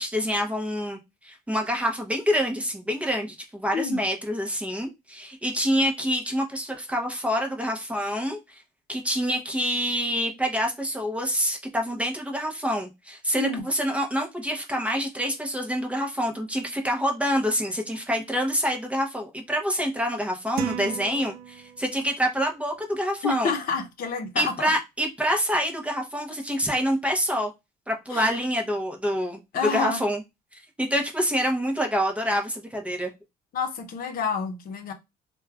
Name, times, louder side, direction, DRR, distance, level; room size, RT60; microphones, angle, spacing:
voice 1, 0.0-8.6 8.9-23.5 24.4-27.5 27.9-29.4 29.7-30.2 30.5-33.1, equal, 5° right, 0.7 m, -27 dB
sound 1, 20.6-22.1, right 10 dB, 70° right, 0.4 m, -35 dB
voice 2, 23.2-24.7 28.1-28.3 29.5-30.0 33.5-34.9, left 5 dB, 60° left, 0.7 m, -29 dB
3.0 x 2.2 x 2.3 m
cardioid pair, 110°, 17 cm